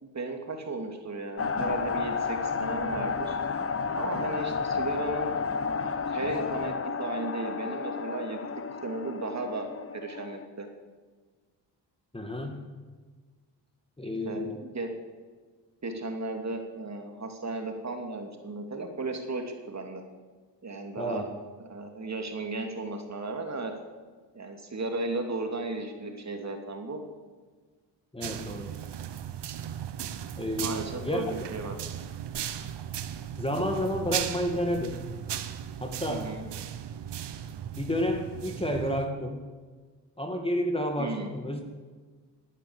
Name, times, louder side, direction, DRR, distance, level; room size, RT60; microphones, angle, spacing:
voice 1, 0.0-3.4 4.0-5.4 6.1-8.5 8.8-10.7 14.2-14.9 15.8-20.0 20.6-21.3 21.6-23.7 24.3-27.0 30.6-31.8 36.1-36.5 41.0-41.3, right 3 dB, 40° right, 4 dB, 2.9 m, -35 dB
sound 1, 1.4-10.5, left 5 dB, 30° left, 1.1 m, -31 dB
voice 2, 12.1-12.6 14.0-14.6 21.0-21.3 28.1-28.7 30.4-31.3 33.4-35.0 35.8-36.3 37.7-39.5 40.2-41.6, equal, 15° left, 4 dB, 2.0 m, -30 dB
sound 2, 28.2-39.1, right 9 dB, 70° right, 1.2 m, -37 dB
17.0 x 9.7 x 8.1 m, 1.5 s
cardioid pair, 85°, 43 cm